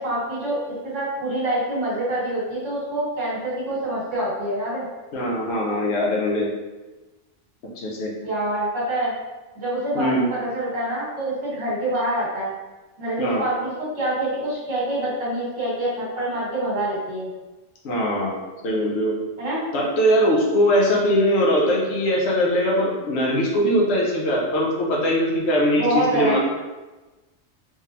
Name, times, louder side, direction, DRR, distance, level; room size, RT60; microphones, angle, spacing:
voice 1, 0.0-4.8 8.2-9.1 9.6-12.5 13.0-17.3 19.4-19.6 25.8-26.4, right 1 dB, 75° right, -7 dB, 1.7 m, -26 dB
voice 2, 5.1-6.5 7.8-8.1 9.9-10.2 13.2-13.4 17.8-18.4 18.6-19.2 19.7-26.4, equal, 60° left, -3 dB, 1.0 m, -21 dB
3.5 x 3.4 x 2.8 m, 1.2 s
omnidirectional pair, 1.3 m